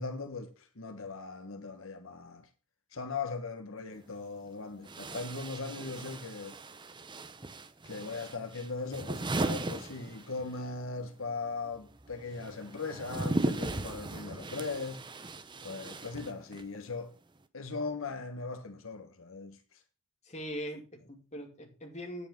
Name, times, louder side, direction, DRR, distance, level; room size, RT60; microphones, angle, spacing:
voice 1, 0.0-2.5 2.9-6.6 7.8-15.0 15.6-17.1 17.5-19.6, left 4 dB, 75° left, 1.3 m, -39 dB
sound 1, 3.9-4.0 4.8-10.7 10.9-16.8, right 2 dB, 20° right, 0.8 m, -37 dB
voice 2, 20.2-22.3, equal, 35° left, 2.5 m, -41 dB
9.8 x 8.4 x 5.2 m
head